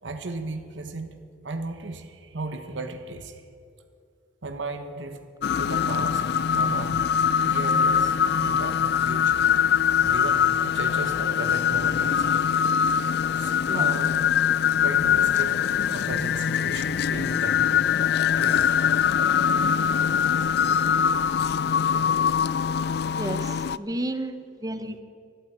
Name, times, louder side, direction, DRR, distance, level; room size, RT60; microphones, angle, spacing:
voice 1, 0.0-1.2 1.4-3.4 4.4-5.2 5.6-7.0 7.4-8.1 8.4-9.5 10.0-12.4 13.3-14.2 14.8-17.9 18.4-18.7, right 2 dB, 90° right, 6 dB, 1.3 m, -35 dB
sound 1, 5.4-23.8, left 8 dB, 60° left, 0.4 m, -23 dB
voice 2, 13.7-14.0 23.2-25.0, right 1 dB, 20° right, 9 dB, 0.9 m, -32 dB
12.0 x 12.0 x 8.9 m, 2.3 s
head